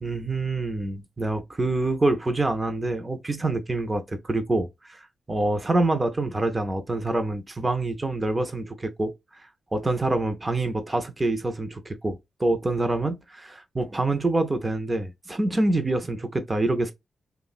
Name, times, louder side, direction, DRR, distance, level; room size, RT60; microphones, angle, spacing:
voice 1, 0.0-9.5 9.7-16.9, right 2 dB, 20° right, 0.4 m, -26 dB
3.2 x 2.0 x 2.3 m
wide cardioid pair, 150°, 0 cm